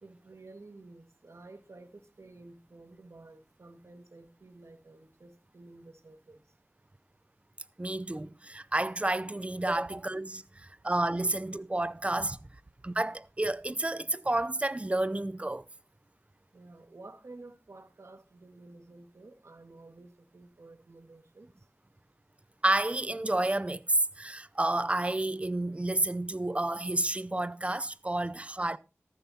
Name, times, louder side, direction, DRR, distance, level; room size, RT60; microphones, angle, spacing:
voice 1, 0.0-6.4 16.5-21.5, right 2 dB, 70° right, 1.8 m, -52 dB
voice 2, 7.8-12.4 12.8-15.6 22.6-28.8, right 2 dB, 25° right, 0.5 m, -30 dB
13.5 x 12.5 x 2.8 m
wide cardioid pair, 55°, 5 cm